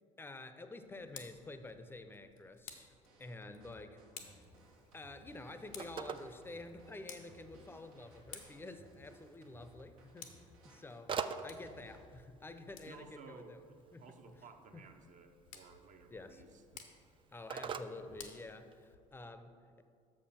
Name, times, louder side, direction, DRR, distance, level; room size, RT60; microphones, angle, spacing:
voice 1, 0.2-4.0 4.9-10.3 10.7-13.6 13.9-14.4 14.7-14.8 16.1-16.4 17.3-19.8, left 2 dB, 10° left, 10 dB, 0.6 m, -50 dB
Tick, 0.8-19.3, left 8 dB, 75° left, 0.8 m, -58 dB
sound 1, 3.0-12.1, right 1 dB, 80° right, 1.1 m, -62 dB
Telephone, 4.4-18.9, right 6 dB, 30° right, 0.4 m, -48 dB
voice 2, 12.9-17.2, right 5 dB, 45° right, 6 dB, 0.8 m, -57 dB
6.6 x 5.4 x 5.6 m, 2.3 s
hypercardioid pair, 55°, 18 cm